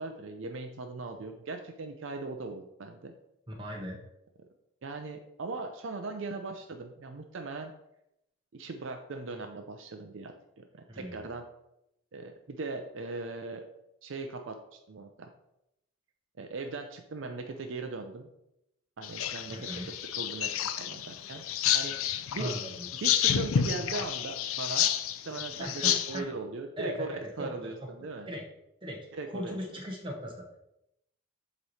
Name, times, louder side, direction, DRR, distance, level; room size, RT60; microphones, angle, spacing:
voice 1, 0.0-3.1 4.8-7.7 8.5-11.4 12.1-13.6 14.0-15.3 16.4-18.3 19.0-19.7 20.1-20.5 20.8-22.5 23.0-24.9 25.3-27.1 27.4-28.3 29.2-29.6, right 3 dB, 65° right, 5 dB, 0.5 m, -39 dB
voice 2, 3.5-4.0 10.9-11.3 19.5-19.9 22.4-22.9 25.6-26.3 26.8-27.5 28.3-28.4 28.8-30.5, equal, 25° right, 0 dB, 1.0 m, -38 dB
sound 1, 19.0-26.2, left 9 dB, 75° left, 0.4 m, -30 dB
8.1 x 3.1 x 4.1 m, 0.83 s
head